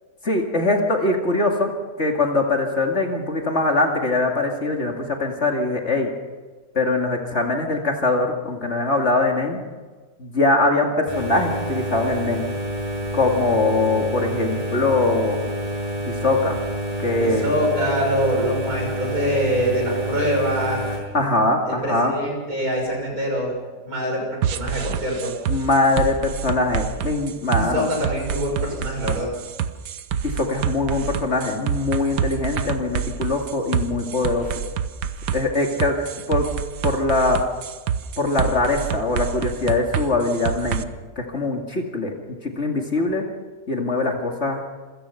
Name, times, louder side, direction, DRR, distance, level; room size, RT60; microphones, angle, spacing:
voice 1, 0.2-1.7 2.0-6.1 6.7-9.6 10.2-12.5 13.1-15.4 16.1-16.6 17.0-17.5 21.1-22.1 25.5-27.9 30.2-34.5 35.3-36.0 36.3-36.5 36.8-37.5 38.2-40.9 41.2-42.1 42.6-43.2 43.7-44.6, left 2 dB, 40° left, 2 dB, 2.6 m, -22 dB
sound 1, 11.1-21.0, equal, 20° right, 7.6 m, -28 dB
voice 2, 17.2-20.9 21.7-23.5 23.8-25.3 27.6-29.3, equal, 60° right, 0 dB, 6.9 m, -24 dB
sound 2, 24.4-40.8, right 8 dB, 85° right, 1.6 m, -27 dB
27.0 x 16.5 x 5.8 m, 1.3 s
omnidirectional pair, 1.8 m